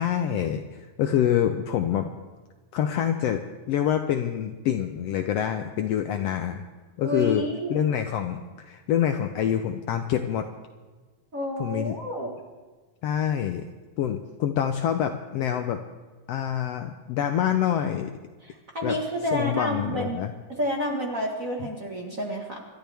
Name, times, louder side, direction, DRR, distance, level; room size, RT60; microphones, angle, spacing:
voice 1, 0.0-2.1 2.7-3.4 3.7-6.6 7.0-7.4 7.7-10.5 11.6-12.0 13.0-13.7 14.0-15.8 16.3-18.1 18.8-19.0 19.3-20.3, left 9 dB, 75° left, 7 dB, 1.5 m, -26 dB
voice 2, 7.0-7.8 11.3-12.4 18.4-20.2 20.5-22.6, equal, 40° right, 0 dB, 1.4 m, -29 dB
26.0 x 12.5 x 3.5 m, 1.3 s
omnidirectional pair, 3.4 m